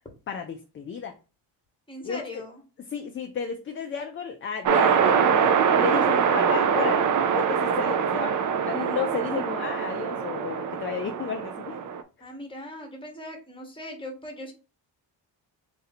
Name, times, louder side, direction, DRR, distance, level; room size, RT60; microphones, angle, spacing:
voice 1, 0.3-1.1 2.0-2.4 2.9-11.8, left 6 dB, 30° left, 4 dB, 0.3 m, -33 dB
voice 2, 1.9-2.6 12.2-14.5, left 1 dB, 10° left, 4 dB, 0.9 m, -39 dB
sound 1, 4.7-12.0, right 7 dB, 45° right, 0.4 m, -23 dB
3.9 x 2.6 x 4.1 m, 0.32 s
wide cardioid pair, 165°, 44 cm